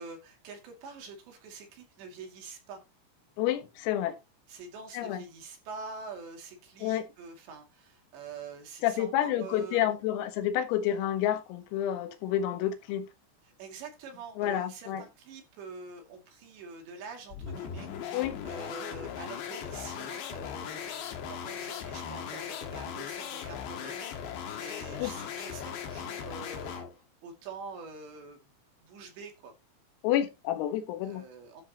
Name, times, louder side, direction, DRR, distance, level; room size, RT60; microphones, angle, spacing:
voice 1, 0.0-2.8 4.5-10.0 13.5-18.2 18.4-26.9 27.2-28.4 28.8-29.5 31.0-31.6, right 4 dB, 60° right, 4.5 m, -45 dB
voice 2, 3.4-4.2 4.9-5.2 6.8-7.1 8.8-13.1 14.4-15.0 18.1-18.4 25.0-25.1 30.0-31.2, left 11 dB, 90° left, 4.1 m, -29 dB
sound 1, 17.3-27.0, left 8 dB, 65° left, 3.5 m, -38 dB
13.0 x 8.3 x 2.9 m
omnidirectional pair, 5.9 m